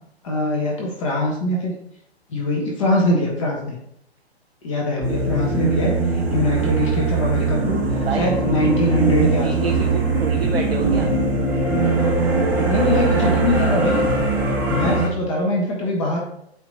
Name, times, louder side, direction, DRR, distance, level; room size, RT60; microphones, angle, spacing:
voice 1, 0.2-1.7 2.3-3.8 4.6-9.9 12.6-14.1 14.7-16.2, left 1 dB, 30° left, -1 dB, 1.3 m, -23 dB
sound 1, 5.0-15.1, right 3 dB, 5° right, 0.7 m, -20 dB
voice 2, 8.0-8.3 9.4-11.1, right 5 dB, 65° right, 2 dB, 0.8 m, -28 dB
8.4 x 3.1 x 4.1 m, 0.72 s
figure-of-eight pair, 135°, 32 cm